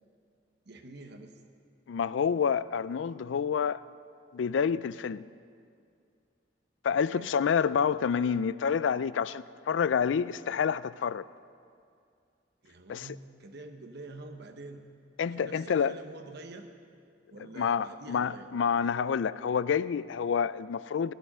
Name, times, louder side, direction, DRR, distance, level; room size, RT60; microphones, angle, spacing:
voice 1, 0.7-1.4 6.9-7.3 12.6-14.8 15.3-16.7 17.3-18.5, right 2 dB, 60° right, 1.0 m, -47 dB
voice 2, 1.9-3.8 4.3-5.2 6.8-11.3 12.9-13.1 15.2-16.0 17.6-21.1, left 7 dB, 70° left, 0.4 m, -28 dB
17.0 x 10.5 x 6.1 m
head